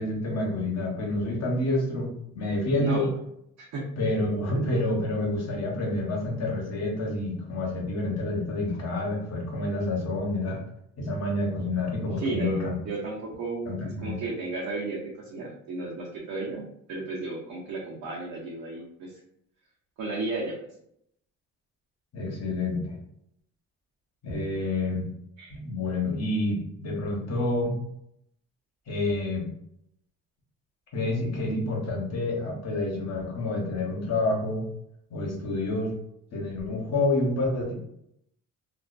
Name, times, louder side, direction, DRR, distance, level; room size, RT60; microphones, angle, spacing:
voice 1, 0.0-3.1 4.0-10.6 11.0-12.7 13.7-14.2 22.1-22.9 24.2-25.1 25.5-27.8 28.9-29.5 30.9-34.7 35.1-35.9 36.3-37.7, left 2 dB, 60° left, -1 dB, 1.0 m, -28 dB
voice 2, 2.8-3.1 3.6-3.8 4.5-4.7 12.2-13.7 14.0-19.2 20.0-20.5 25.4-25.5, right 3 dB, 70° right, -4 dB, 0.7 m, -33 dB
2.4 x 2.1 x 2.4 m, 0.75 s
cardioid pair, 90°, 30 cm